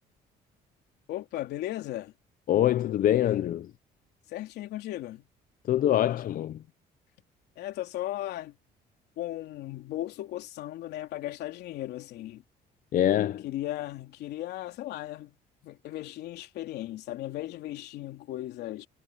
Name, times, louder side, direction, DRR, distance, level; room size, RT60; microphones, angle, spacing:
voice 1, 1.1-2.1 4.3-5.2 7.6-8.6 9.2-12.4 13.4-15.3 15.6-18.9, left 14 dB, 80° left, 3.2 m, -36 dB
voice 2, 2.5-3.7 5.7-6.6 12.9-13.5, left 12 dB, 55° left, 0.7 m, -24 dB
cardioid pair, 110°, 17 cm